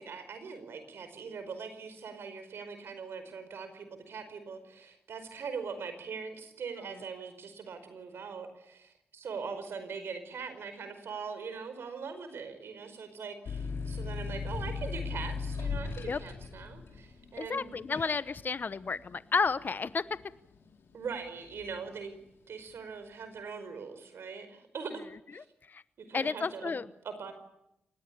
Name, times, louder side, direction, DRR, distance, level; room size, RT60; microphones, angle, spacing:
voice 1, 0.0-17.7 18.0-18.1 20.9-22.2 22.5-25.0 25.3-25.4 26.1-26.8 27.0-27.3, right 5 dB, 80° right, 10 dB, 4.9 m, -41 dB
sound 1, 13.5-20.7 21.2-21.9, left 4 dB, 80° left, 4.3 m, -38 dB
voice 2, 17.4-20.1 25.4-25.8 26.1-26.9, left 4 dB, 50° left, 15 dB, 1.0 m, -32 dB
24.5 x 19.5 x 8.6 m, 0.81 s
cardioid pair, 55°, 4 cm